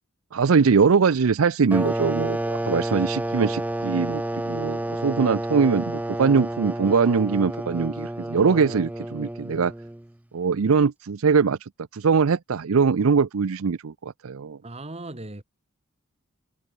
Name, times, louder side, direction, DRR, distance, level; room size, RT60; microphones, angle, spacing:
voice 1, 0.3-9.7 10.3-11.6 11.9-14.6, right 5 dB, 80° right, 0.5 m, -22 dB
sound 1, 1.7-10.1, right 1 dB, 5° right, 0.4 m, -30 dB
voice 2, 14.6-15.4, right 2 dB, 30° right, 1.9 m, -37 dB
head